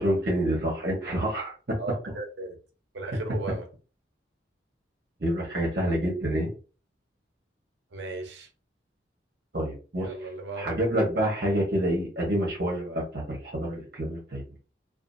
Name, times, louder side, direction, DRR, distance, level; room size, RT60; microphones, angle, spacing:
voice 1, 0.0-1.8 5.2-6.5 9.5-10.1 10.6-14.4, equal, 55° right, 0.9 m, -27 dB
voice 2, 1.8-2.6 2.9-3.7 7.9-8.5 10.0-10.6, right 3 dB, 75° right, 0.7 m, -36 dB
2.5 x 2.4 x 2.5 m
head